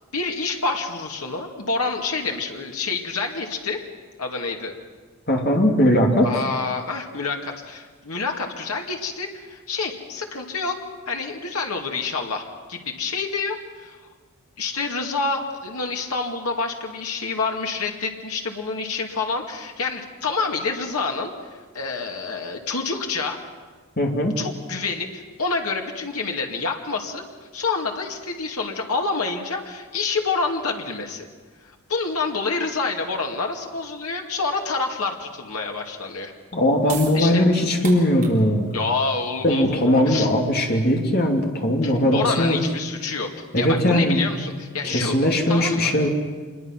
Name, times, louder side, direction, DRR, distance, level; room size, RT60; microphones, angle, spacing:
voice 1, 0.1-3.8 4.2-4.8 6.2-10.8 11.1-14.0 14.6-23.4 24.4-27.2 27.5-31.3 31.6-36.3 37.1-37.4 38.7-40.3 41.8-45.2 45.5-45.9, left 4 dB, 90° left, 2 dB, 2.3 m, -28 dB
voice 2, 5.3-6.3 24.0-24.3 36.5-38.7 39.4-42.6 43.5-44.3 44.8-46.1, left 1 dB, 45° left, 1 dB, 2.9 m, -19 dB
sound 1, 36.8-43.2, right 6 dB, 40° right, 3.8 m, -42 dB
26.5 x 22.0 x 6.0 m, 1.4 s
head